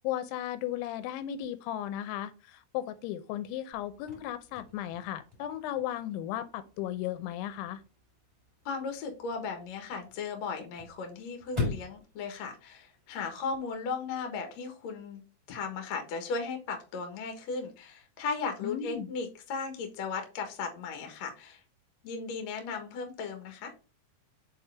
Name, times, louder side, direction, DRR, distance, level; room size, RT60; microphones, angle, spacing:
voice 1, 0.0-7.8 18.6-19.1, left 12 dB, 85° left, 3.1 m, -35 dB
Chirp tweet / Car / Slam, 3.7-13.7, left 3 dB, 10° right, 1.8 m, -43 dB
voice 2, 8.6-15.2 15.5-21.6 22.0-23.7, left 4 dB, 70° left, 1.6 m, -36 dB
6.5 x 4.2 x 3.4 m
omnidirectional pair, 5.2 m